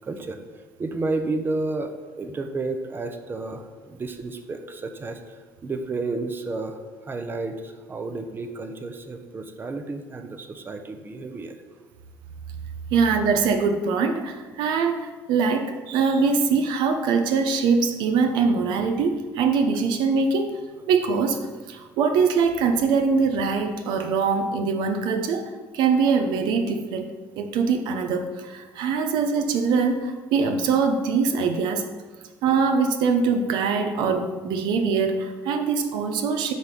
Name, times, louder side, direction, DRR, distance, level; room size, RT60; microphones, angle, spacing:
voice 1, 0.0-0.4 0.8-11.6, right 3 dB, 30° right, 6 dB, 0.8 m, -31 dB
voice 2, 12.9-20.6 20.9-21.4 21.7-31.9 32.4-36.5, right 5 dB, 80° right, 6 dB, 0.8 m, -23 dB
9.4 x 3.5 x 6.0 m, 1.4 s
cardioid pair, 105°, 8 cm